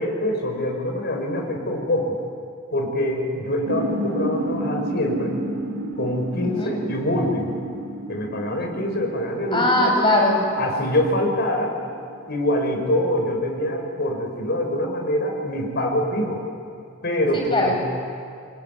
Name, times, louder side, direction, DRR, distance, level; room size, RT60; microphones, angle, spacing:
voice 1, 0.0-2.2 2.7-5.3 6.0-7.6 8.1-9.9 10.5-11.7 12.3-16.4 17.0-17.7, left 1 dB, 50° left, 2 dB, 5.7 m, -24 dB
sound 1, 3.7-12.9, right 1 dB, 90° right, 2.1 m, -32 dB
voice 2, 9.5-10.5 17.5-17.7, left 1 dB, 25° left, 0 dB, 6.7 m, -19 dB
27.5 x 22.5 x 9.6 m, 2.3 s
head